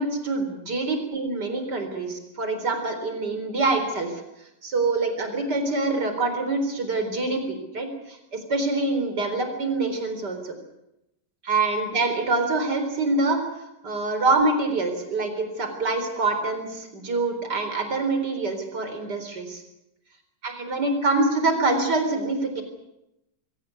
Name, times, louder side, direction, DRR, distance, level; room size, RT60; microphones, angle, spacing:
voice 1, 0.0-4.2 4.6-10.5 11.4-13.4 13.8-19.6 20.4-22.6, right 3 dB, 70° right, 7 dB, 4.7 m, -25 dB
22.5 x 17.5 x 9.5 m, 0.87 s
omnidirectional pair, 1.9 m